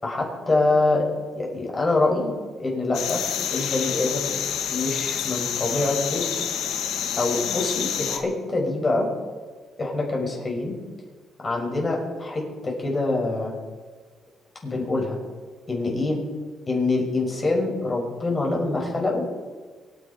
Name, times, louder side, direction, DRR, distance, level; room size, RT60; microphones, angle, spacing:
voice 1, 0.0-1.1 1.4-2.3 2.6-3.2 3.5-4.4 4.7-6.3 7.2-9.1 9.8-10.7 11.4-13.5 14.6-15.2 15.7-16.2 16.7-19.3, left 2 dB, 35° left, -2 dB, 5.7 m, -25 dB
sound 1, 2.9-8.2, left 8 dB, 85° left, 1.4 m, -28 dB
24.0 x 10.5 x 4.4 m, 1.5 s
cardioid pair, 90°, 0 cm